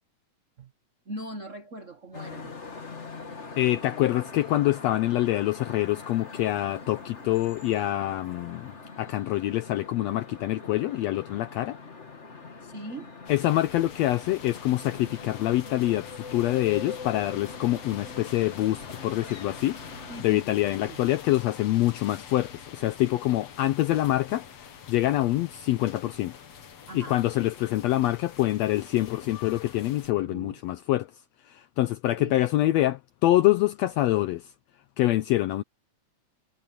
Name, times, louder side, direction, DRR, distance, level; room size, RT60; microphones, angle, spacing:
voice 1, 1.0-2.5 12.6-13.2 20.1-21.0 26.9-27.2 30.3-30.6 32.1-32.4, right 1 dB, 85° right, 0.6 m, -40 dB
sound 1, 2.1-20.2, left 4 dB, 30° left, 1.5 m, -43 dB
voice 2, 3.6-11.8 13.3-19.8 20.2-24.4 24.9-26.3 26.9-31.1 31.5-34.5 35.0-35.6, left 15 dB, 90° left, 1.5 m, -25 dB
sound 2, 13.3-30.1, left 7 dB, 55° left, 2.7 m, -45 dB
omnidirectional pair, 3.6 m